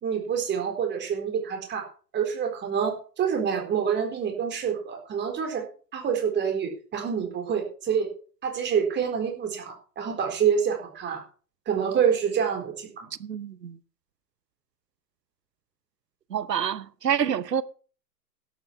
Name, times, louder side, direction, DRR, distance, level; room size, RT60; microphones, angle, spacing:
voice 1, 0.0-5.6 5.9-8.1 8.4-11.2 11.7-13.1, right 7 dB, 20° right, 4.1 m, -27 dB
voice 2, 13.2-13.8 16.3-17.6, right 8 dB, 75° right, 1.0 m, -27 dB
12.0 x 9.1 x 6.1 m
figure-of-eight pair, 105°, 49 cm